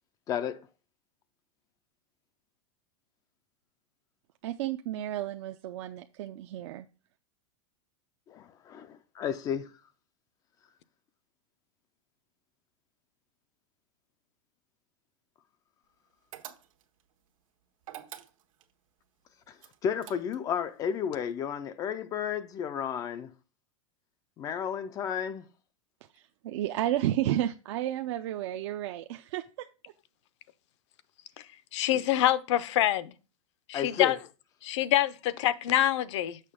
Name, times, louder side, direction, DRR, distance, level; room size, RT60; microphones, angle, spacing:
voice 1, 0.3-0.7 8.3-9.7 19.5-19.6 19.8-23.3 24.4-25.5 31.9-32.0 33.7-34.2, left 8 dB, 20° left, 0.4 m, -32 dB
voice 2, 4.4-6.9 26.4-29.7, right 13 dB, 55° right, 0.5 m, -32 dB
sound 1, 16.3-17.0 17.8-18.7 19.6-20.6, right 11 dB, 80° right, 1.2 m, -46 dB
voice 3, 31.7-33.1 33.7-34.2 34.6-36.4, left 13 dB, 60° left, 0.7 m, -26 dB
6.6 x 6.0 x 3.6 m
supercardioid pair, 150°, 17 cm